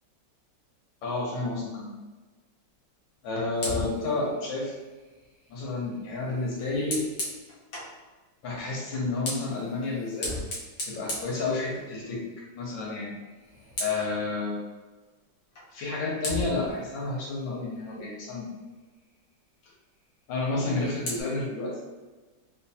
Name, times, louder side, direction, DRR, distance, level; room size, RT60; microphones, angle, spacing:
voice 1, 1.0-1.9 3.2-4.7 5.5-7.1 8.4-10.3 10.9-12.2 12.5-13.1 13.8-14.6 15.7-18.5 20.3-21.8, left 3 dB, 85° left, -3 dB, 1.7 m, -30 dB
Fire, 3.5-8.0 8.9-12.1 12.5-12.8 13.1-14.2 15.6-15.7 16.2-18.5 20.4-21.2, left 1 dB, 70° left, 1.5 m, -38 dB
4.5 x 2.3 x 2.7 m, 1.3 s
omnidirectional pair, 2.0 m